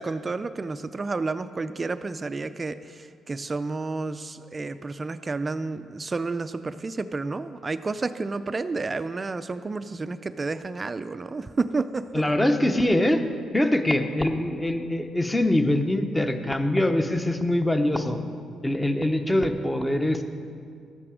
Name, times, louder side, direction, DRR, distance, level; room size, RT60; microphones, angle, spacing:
voice 1, 0.0-12.3, right 3 dB, 30° right, 12 dB, 0.4 m, -30 dB
voice 2, 12.1-13.2 13.5-18.2 18.6-20.2, left 1 dB, 10° left, 7 dB, 0.8 m, -23 dB
13.0 x 8.6 x 5.0 m, 2.2 s
cardioid pair, 90°, 0 cm